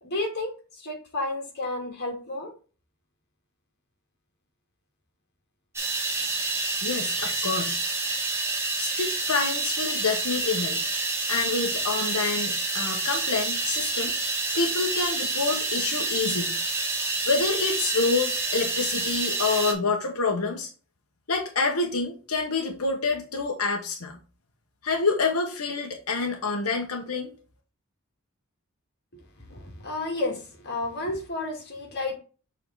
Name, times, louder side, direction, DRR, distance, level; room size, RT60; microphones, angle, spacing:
voice 1, 0.0-2.5 7.1-7.7 29.1-29.2 29.5-32.1, left 2 dB, 50° left, 2.3 m, -32 dB
sound 1, 5.8-19.7, right 3 dB, 10° right, 1.4 m, -28 dB
voice 2, 6.8-7.8 8.8-10.8 11.3-14.1 14.5-16.5 17.3-20.7 21.3-24.2 24.8-27.3, left 4 dB, 90° left, 1.2 m, -27 dB
6.9 x 3.8 x 4.0 m
head